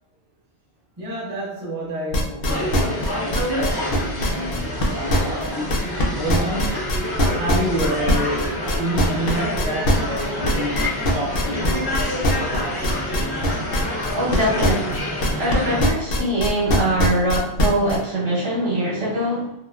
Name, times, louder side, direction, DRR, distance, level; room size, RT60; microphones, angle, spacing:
voice 1, 1.0-12.9 17.8-17.9, right 1 dB, 35° right, -4 dB, 0.9 m, -29 dB
sound 1, 2.1-6.0 6.3-15.5 15.8-18.0, left 1 dB, 65° left, 0.8 m, -21 dB
sound 2, 2.4-15.9, left 1 dB, 25° left, 0.5 m, -27 dB
voice 2, 14.1-15.0 15.4-19.5, right 1 dB, 65° right, -6 dB, 1.1 m, -23 dB
3.1 x 2.3 x 2.3 m, 0.78 s
omnidirectional pair, 1.1 m